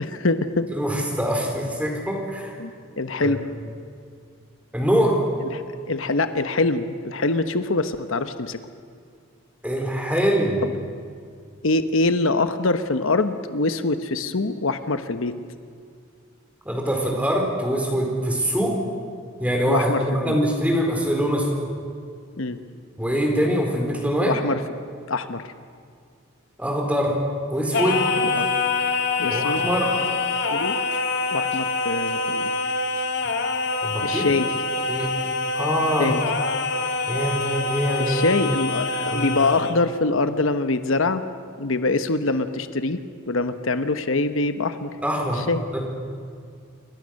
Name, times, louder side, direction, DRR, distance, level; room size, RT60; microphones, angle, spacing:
voice 1, 0.0-0.7 2.6-2.7 3.0-3.5 5.4-8.6 11.6-15.3 19.7-20.4 22.4-22.6 24.2-24.6 25.1-25.4 28.2-28.4 29.2-29.6 30.5-30.8 31.3-32.5 34.0-34.5 36.0-36.2 38.1-41.2 41.6-43.0 43.3-44.9 45.3-45.6, left 3 dB, 75° left, 10 dB, 1.0 m, -24 dB
voice 2, 0.7-2.6 3.2-3.4 4.7-5.2 9.6-10.6 16.6-18.8 19.4-21.5 23.0-24.4 26.6-27.2 27.5-28.1 29.3-29.9 33.8-34.3 34.9-35.1 35.5-36.2 37.1-38.4 39.1-39.4 45.0-45.4 45.7-45.8, equal, 5° right, 1 dB, 4.3 m, -23 dB
Singing, 27.7-39.8, left 3 dB, 55° left, 1.9 m, -25 dB
28.0 x 23.5 x 6.5 m, 2.3 s
head